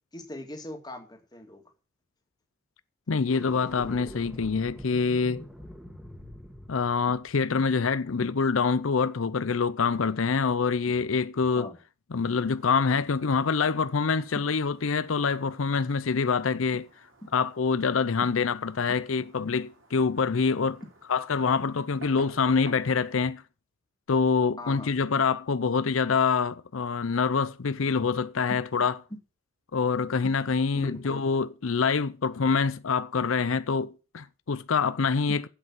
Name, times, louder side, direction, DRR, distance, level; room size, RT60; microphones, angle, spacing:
voice 1, 0.1-1.6 11.6-11.8 24.6-24.9 30.2-30.3 30.7-31.3 35.3-35.4, left 1 dB, 20° left, 2.1 m, -39 dB
voice 2, 3.1-5.4 6.7-11.7 12.1-16.9 17.3-20.8 21.1-23.4 24.1-28.9 29.7-35.4, left 5 dB, 80° left, 0.6 m, -26 dB
sound 1, 3.2-8.5, equal, 5° right, 1.8 m, -45 dB
Fireworks, 12.3-23.3, right 2 dB, 70° right, 3.2 m, -53 dB
9.6 x 8.1 x 7.3 m
head